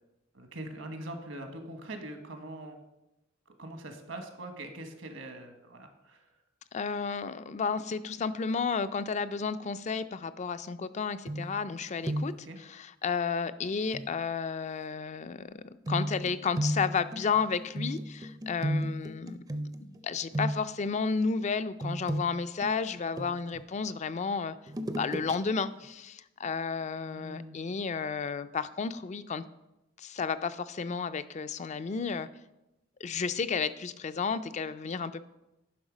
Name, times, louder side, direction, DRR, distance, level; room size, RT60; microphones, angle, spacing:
voice 1, 0.3-2.8 3.6-6.3 12.4-12.6 27.1-27.6, right 1 dB, 75° right, 6 dB, 1.3 m, -42 dB
voice 2, 6.7-19.4 19.8-24.6 25.0-29.4 30.0-32.3 33.0-35.3, left 5 dB, 35° left, 13 dB, 0.4 m, -32 dB
sound 1, 11.3-11.8 12.0-12.5 13.9-14.1 15.9-20.0 20.3-20.9 21.8-23.6 24.7-25.4 25.7-25.9, right 1 dB, 20° right, 0.5 m, -34 dB
10.5 x 5.7 x 5.0 m, 0.93 s
head